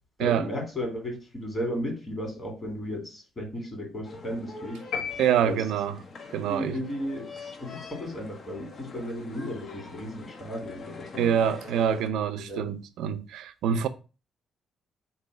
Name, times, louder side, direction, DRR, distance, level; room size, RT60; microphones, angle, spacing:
voice 1, 0.2-4.8 5.4-5.6 6.5-7.3 7.6-11.3 12.3-12.7, equal, 30° left, 1.7 m, -34 dB
sound 1, 4.0-12.1, left 3 dB, 50° left, 0.7 m, -44 dB
sound 2, 4.9-6.2, left 6 dB, 85° left, 0.9 m, -35 dB
voice 2, 5.2-6.0 6.3-6.8 11.2-13.9, right 8 dB, 85° right, 0.4 m, -26 dB
3.8 x 2.7 x 4.8 m
cardioid pair, 90°, 0 cm